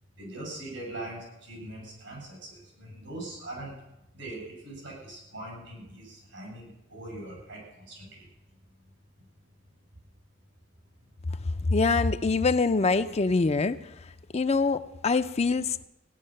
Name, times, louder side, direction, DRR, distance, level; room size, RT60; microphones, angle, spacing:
voice 1, 0.2-3.7 4.1-8.2, right 1 dB, 90° right, -1 dB, 7.9 m, -41 dB
voice 2, 11.4-15.9, left 4 dB, 35° left, 11 dB, 0.5 m, -25 dB
17.0 x 10.0 x 6.5 m, 0.88 s
head